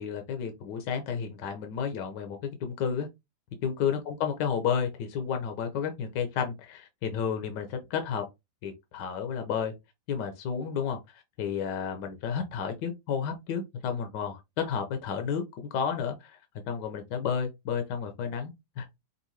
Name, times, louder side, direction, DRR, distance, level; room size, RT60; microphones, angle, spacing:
voice 1, 0.0-3.1 3.6-8.2 8.6-9.7 10.1-16.4 16.7-18.9, left 7 dB, 75° left, 1.4 m, -32 dB
5.4 x 2.6 x 3.1 m
omnidirectional pair, 1.9 m